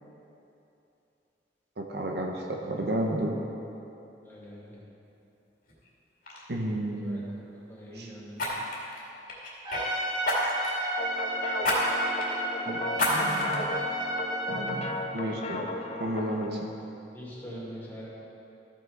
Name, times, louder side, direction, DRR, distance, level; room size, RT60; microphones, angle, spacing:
voice 1, 1.8-3.4 6.5-7.3 7.9-8.1 12.6-13.7 14.5-15.6 16.0-16.7, right 1 dB, 65° right, 0 dB, 1.0 m, -32 dB
voice 2, 4.2-4.8 7.0-8.5 17.1-18.1, equal, 10° left, -7 dB, 2.4 m, -44 dB
Fire, 5.7-5.9 6.2-6.4 8.3-9.8 10.2-10.8 11.6-11.8 12.2-12.3 12.9-13.6 14.1-14.2, left 1 dB, 55° left, 2.3 m, -29 dB
Trumpet, 9.7-14.9, right 1 dB, 25° right, 1.2 m, -32 dB
sound 1, 11.0-16.5, left 2 dB, 35° left, 0.6 m, -36 dB
13.5 x 6.0 x 4.7 m, 2.9 s
head